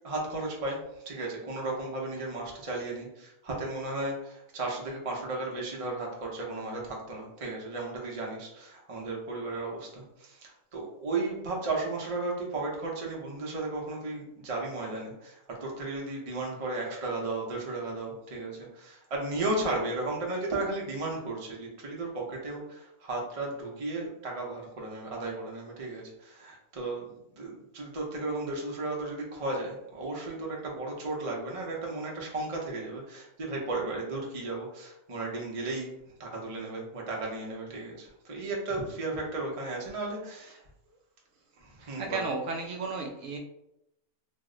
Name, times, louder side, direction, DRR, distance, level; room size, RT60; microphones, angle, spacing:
voice 1, 0.0-0.8 1.1-35.9 36.2-40.5 41.6-42.2, right 2 dB, 45° right, -2 dB, 0.4 m, -35 dB
voice 2, 41.8-43.4, right 3 dB, 70° right, 1 dB, 0.9 m, -34 dB
2.7 x 2.1 x 3.6 m, 0.85 s
omnidirectional pair, 1.6 m